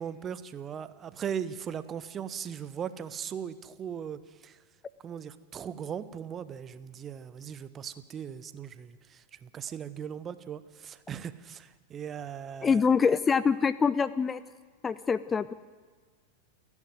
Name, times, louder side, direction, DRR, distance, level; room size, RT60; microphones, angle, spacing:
voice 1, 0.0-4.6 5.0-12.8, right 8 dB, 25° right, 15 dB, 1.0 m, -38 dB
voice 2, 12.6-14.4 14.8-15.5, left 6 dB, 15° left, 17 dB, 0.5 m, -25 dB
29.0 x 11.0 x 9.5 m, 1.5 s
figure-of-eight pair, 90°, 0 cm